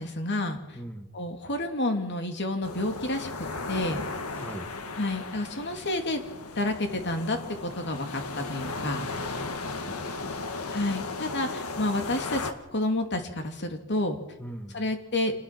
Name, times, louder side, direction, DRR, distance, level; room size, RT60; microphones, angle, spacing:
voice 1, 0.0-0.6 1.1-3.3 3.7-4.0 5.0-6.2 6.5-9.0 10.7-14.2 14.7-15.3, left 1 dB, 50° left, 5 dB, 2.9 m, -29 dB
voice 2, 0.7-1.1 4.4-4.7 9.4-9.5 9.9-10.7 14.4-14.8, right 1 dB, 5° left, 6 dB, 1.8 m, -41 dB
sound 1, 2.6-12.5, left 3 dB, 75° left, 1.9 m, -36 dB
27.0 x 20.0 x 6.1 m, 0.99 s
head